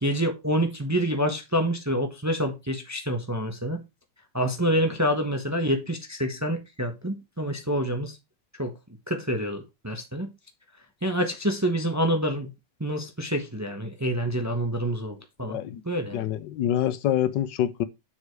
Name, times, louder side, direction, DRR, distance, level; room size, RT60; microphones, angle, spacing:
voice 1, 0.0-3.8 4.3-8.2 8.6-8.7 9.1-10.3 11.0-12.5 12.8-15.6 15.8-16.3, equal, 15° right, 0.8 m, -27 dB
voice 2, 15.5-15.8 16.1-17.8, left 11 dB, 80° left, 1.4 m, -26 dB
7.2 x 4.9 x 4.6 m
omnidirectional pair, 1.9 m